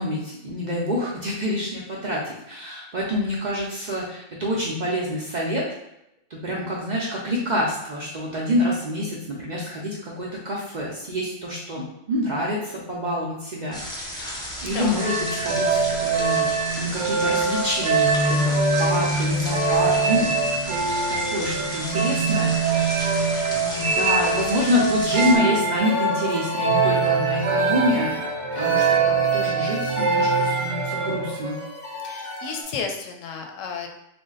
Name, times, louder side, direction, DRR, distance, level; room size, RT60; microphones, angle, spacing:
voice 1, 0.0-5.7 6.3-16.5 16.8-20.3 20.7-23.3 23.6-28.2 28.6-31.6, left 1 dB, 50° right, -4 dB, 0.5 m, -27 dB
sound 1, 13.7-25.4, equal, 5° left, 0.4 m, -34 dB
sound 2, 15.0-31.4, right 4 dB, 80° right, 1.1 m, -23 dB
sound 3, 25.8-32.6, left 1 dB, 40° left, 0.8 m, -30 dB
voice 2, 32.0-33.9, left 5 dB, 85° left, 3 dB, 1.0 m, -32 dB
3.4 x 2.1 x 3.8 m, 0.82 s
omnidirectional pair, 1.3 m